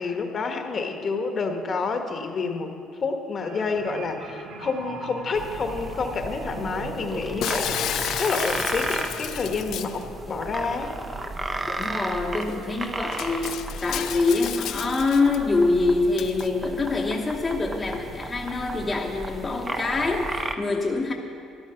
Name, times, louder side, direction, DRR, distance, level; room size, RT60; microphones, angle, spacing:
voice 1, 0.0-2.7 3.0-10.9, left 4 dB, 40° left, 5 dB, 1.2 m, -29 dB
sound 1, 3.4-14.2 14.5-14.7, right 2 dB, 85° right, 2.4 m, -40 dB
sound 2, 5.4-20.5, right 2 dB, 20° right, 0.8 m, -34 dB
Shatter, 7.4-10.0 11.8-11.9 12.4-12.5 13.1-15.4 16.2-16.5, left 12 dB, 65° left, 0.3 m, -32 dB
voice 2, 11.7-21.1, left 3 dB, 20° left, -1 dB, 1.0 m, -25 dB
13.5 x 11.5 x 5.7 m, 2.5 s
cardioid pair, 120°, 0 cm